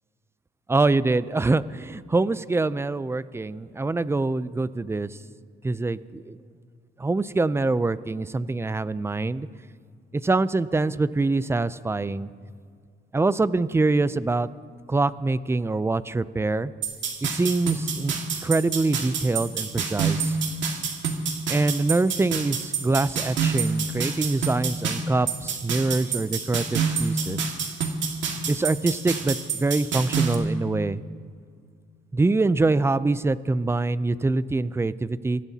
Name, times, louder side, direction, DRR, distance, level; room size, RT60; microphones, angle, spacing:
voice 1, 0.7-5.2 5.6-6.4 7.0-9.5 10.1-12.3 13.1-14.5 14.9-16.7 17.2-18.1 18.4-20.4 21.5-27.5 28.5-31.0 32.1-35.4, right 3 dB, 15° right, 16 dB, 0.4 m, -24 dB
sound 1, 16.8-30.3, right 5 dB, 70° right, 1.9 m, -27 dB
25.5 x 16.0 x 2.8 m, 2.1 s
cardioid pair, 90°, 20 cm